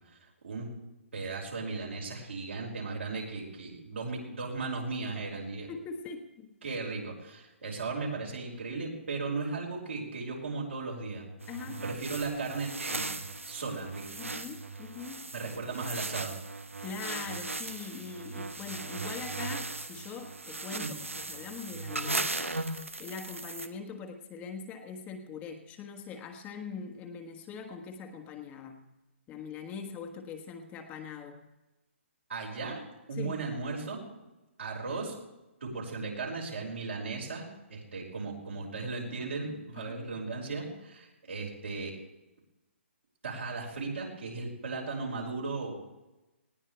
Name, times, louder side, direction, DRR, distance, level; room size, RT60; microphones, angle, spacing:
voice 1, 1.1-5.7 6.6-11.3 11.6-13.1 13.5-14.1 15.3-16.3 20.8-20.9 32.3-32.8 33.1-34.0 34.6-35.2 35.6-42.0 43.2-45.7, right 3 dB, 70° right, -1 dB, 5.4 m, -36 dB
voice 2, 5.7-6.8 11.5-11.8 14.2-15.3 16.8-28.9 29.3-31.5 33.1-33.4 39.8-40.1, left 6 dB, 20° left, 4 dB, 1.4 m, -42 dB
sound 1, 11.4-23.7, right 2 dB, 90° right, 1.1 m, -38 dB
19.5 x 17.0 x 3.4 m, 1.0 s
figure-of-eight pair, 135°, 7 cm